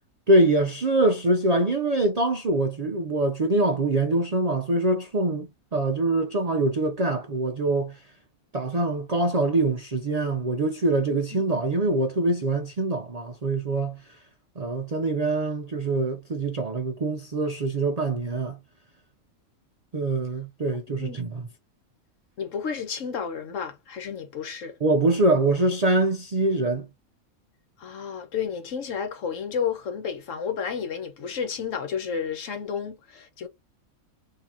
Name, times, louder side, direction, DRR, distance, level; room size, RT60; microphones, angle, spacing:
voice 1, 0.3-8.0 8.5-14.0 14.6-18.6 19.9-21.5 24.8-26.9, right 2 dB, 70° right, 0.3 m, -24 dB
voice 2, 20.9-21.2 22.4-24.7 27.8-33.5, left 7 dB, 65° left, 1.2 m, -31 dB
3.7 x 2.8 x 2.8 m
omnidirectional pair, 1.5 m